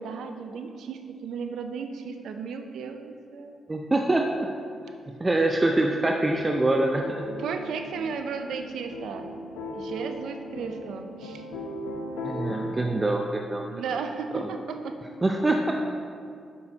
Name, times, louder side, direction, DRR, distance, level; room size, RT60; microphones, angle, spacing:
voice 1, 0.0-3.5 7.4-9.3 9.7-11.5 13.7-15.0, right 5 dB, 75° right, 6 dB, 0.6 m, -34 dB
voice 2, 3.7-4.5 5.1-7.3 12.2-13.7 14.4-14.5 15.2-15.7, right 2 dB, 25° right, 2 dB, 0.5 m, -24 dB
sound 1, 6.1-12.8, left 1 dB, 85° left, 0.8 m, -37 dB
7.4 x 6.0 x 3.9 m, 2.4 s
supercardioid pair, 50°, 0 cm